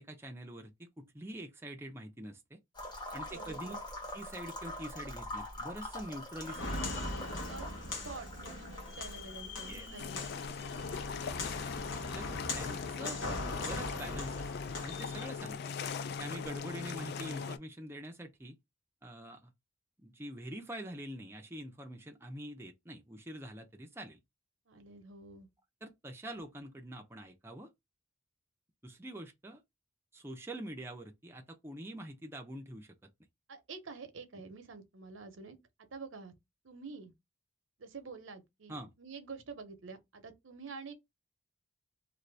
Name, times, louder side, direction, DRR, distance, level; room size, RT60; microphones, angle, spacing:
voice 1, 0.0-2.6 3.1-3.8 4.1-6.8 9.7-9.9 10.4-10.5 11.3-11.4 12.2-12.3 12.5-14.5 14.8-15.7 16.2-18.6 19.0-19.5 20.0-24.2 25.8-27.7 28.8-29.6 30.1-33.0 38.7-38.9, right 1 dB, 10° right, 0.4 m, -45 dB
sound 1, 2.7-12.5, left 1 dB, 20° left, 0.9 m, -45 dB
voice 2, 3.3-3.8 7.5-10.2 24.7-25.5 33.5-35.6 35.9-36.3 36.6-37.1 37.8-40.9, right 4 dB, 85° right, 0.8 m, -48 dB
Walk footsteps, 6.5-15.2, left 2 dB, 75° left, 0.9 m, -40 dB
sound 2, 10.0-17.6, left 6 dB, 55° left, 0.3 m, -40 dB
2.6 x 2.6 x 3.2 m
head